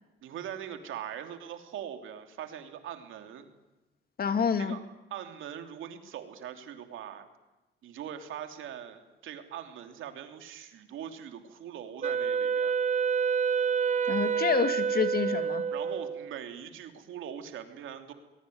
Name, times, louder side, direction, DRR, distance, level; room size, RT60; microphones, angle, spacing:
voice 1, 0.2-3.5 4.6-4.8 5.1-7.3 7.8-12.7 15.7-18.1, right 9 dB, 85° right, 6 dB, 3.2 m, -41 dB
voice 2, 4.2-4.8 14.1-15.6, left 6 dB, 50° left, 9 dB, 2.3 m, -28 dB
Wind instrument woodwind instrument, 12.0-16.3, right 6 dB, 40° right, 1.1 m, -28 dB
23.0 x 21.5 x 9.5 m, 1.1 s
cardioid pair, 90°, 20 cm